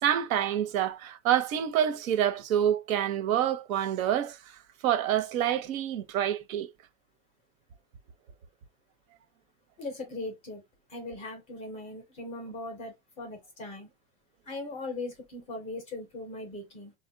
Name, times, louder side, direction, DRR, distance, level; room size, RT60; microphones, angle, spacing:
voice 1, 0.0-6.7, right 10 dB, 80° right, 0.7 m, -27 dB
voice 2, 9.8-10.6 10.9-13.9 14.5-16.9, left 2 dB, 15° left, 0.4 m, -39 dB
3.9 x 2.1 x 2.6 m
supercardioid pair, 165°, 40 cm